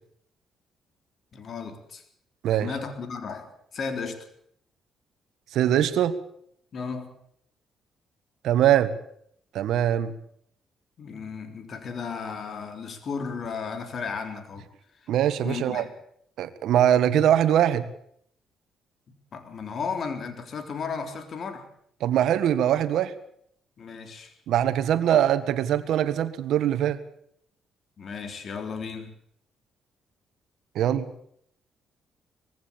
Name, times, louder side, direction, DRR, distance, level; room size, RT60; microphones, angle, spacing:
voice 1, 1.3-2.0 2.5-4.3 6.7-7.1 11.0-14.6 15.4-15.9 19.3-21.7 23.8-24.3 28.0-29.1, left 5 dB, 50° left, 7 dB, 3.7 m, -34 dB
voice 2, 5.5-6.2 8.4-8.9 9.5-10.2 15.1-15.8 16.4-17.9 22.0-23.1 24.5-27.0 30.7-31.1, right 11 dB, 80° right, 13 dB, 1.6 m, -22 dB
20.0 x 15.5 x 8.8 m, 0.68 s
cardioid pair, 90°, 0 cm